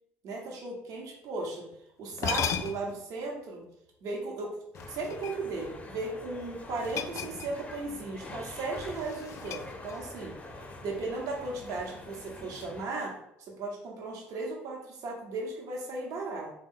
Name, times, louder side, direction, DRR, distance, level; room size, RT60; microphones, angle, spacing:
voice 1, 0.2-1.7 2.0-3.6 4.0-4.6 4.9-10.3 10.8-16.5, right 3 dB, 65° right, 0 dB, 0.9 m, -36 dB
sound 1, 1.7-1.8 2.1-3.0 4.7-5.7 6.8-7.8 8.1-8.3 8.8-10.2, left 8 dB, 55° left, 0.3 m, -36 dB
sound 2, 4.7-12.9, left 2 dB, 20° left, 0.6 m, -45 dB
3.3 x 2.2 x 3.5 m, 0.77 s
hypercardioid pair, 60°, 6 cm